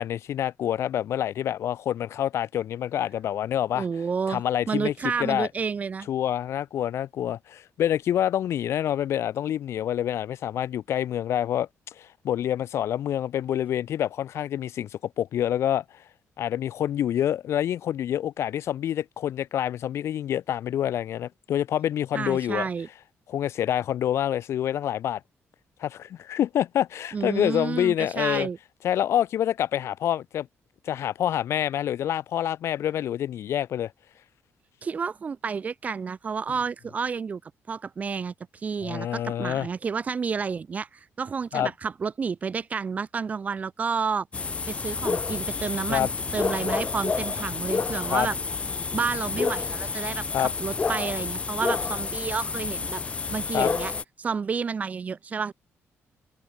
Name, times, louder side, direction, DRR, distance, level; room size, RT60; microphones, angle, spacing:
voice 1, 0.0-3.9 4.3-5.5 6.1-11.7 12.0-15.8 16.4-22.7 23.3-25.2 25.8-28.5 28.8-30.5 30.9-33.9 38.8-39.7 41.5-41.7 45.9-46.1 48.1-48.3 50.3-50.5 53.5-53.7, left 11 dB, 65° left, 1.7 m, -27 dB
voice 2, 3.7-6.1 22.1-22.9 27.1-28.6 34.8-37.4 37.7-44.3 44.7-48.4 48.9-53.0 53.3-53.9 54.2-55.5, right 5 dB, 30° right, 1.6 m, -30 dB
sound 1, 44.3-54.0, left 4 dB, 25° left, 1.1 m, -29 dB
cardioid pair, 170°, 5 cm